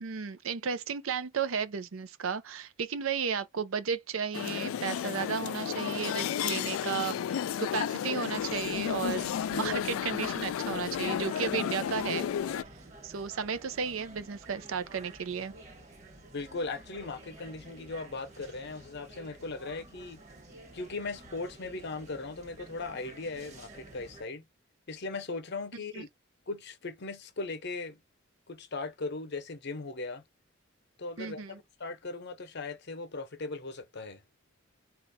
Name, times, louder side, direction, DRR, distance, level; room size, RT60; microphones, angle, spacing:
voice 1, 0.0-12.3 13.0-15.5 25.9-26.0 31.2-31.6, right 6 dB, 85° right, 0.6 m, -34 dB
sound 1, 4.3-12.6, left 9 dB, 85° left, 0.3 m, -32 dB
sound 2, 8.4-24.2, right 2 dB, 35° right, 1.3 m, -51 dB
voice 2, 16.3-20.2 20.7-24.5 24.9-26.1 26.5-28.0 28.5-30.2 31.0-31.4 31.8-34.2, left 3 dB, 55° left, 0.7 m, -38 dB
4.2 x 2.4 x 2.7 m
head